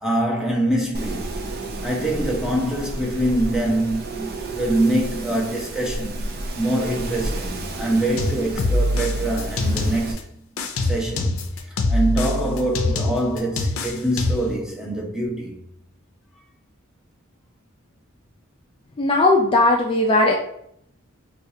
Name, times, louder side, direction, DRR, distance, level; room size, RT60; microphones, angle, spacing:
voice 1, 0.0-1.3 1.8-6.3 6.5-10.2 10.8-11.4 11.9-15.6, right 1 dB, 5° right, 0.7 m, -24 dB
Wind, 0.9-10.1, right 2 dB, 50° right, 0.5 m, -32 dB
sound 1, 8.2-10.2 10.6-14.6, left 1 dB, 85° left, 0.5 m, -24 dB
voice 2, 19.0-20.3, left 2 dB, 25° left, 0.4 m, -17 dB
4.6 x 2.4 x 2.7 m
head